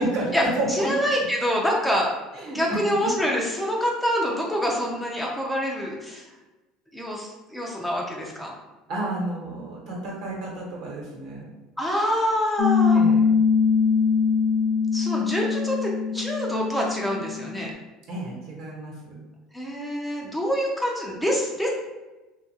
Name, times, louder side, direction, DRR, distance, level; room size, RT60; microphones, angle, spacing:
voice 1, 0.0-0.9 2.3-2.8 8.9-11.5 12.9-13.4 18.1-19.1, right 1 dB, 65° right, -3 dB, 1.0 m, -30 dB
voice 2, 0.7-2.1 2.5-6.3 6.9-8.5 11.8-13.0 14.9-17.7 19.5-21.7, equal, 5° left, -2 dB, 0.5 m, -26 dB
Piano, 12.6-17.7, left 5 dB, 85° left, 0.4 m, -22 dB
2.7 x 2.3 x 2.7 m, 1.1 s
supercardioid pair, 110°, 0 cm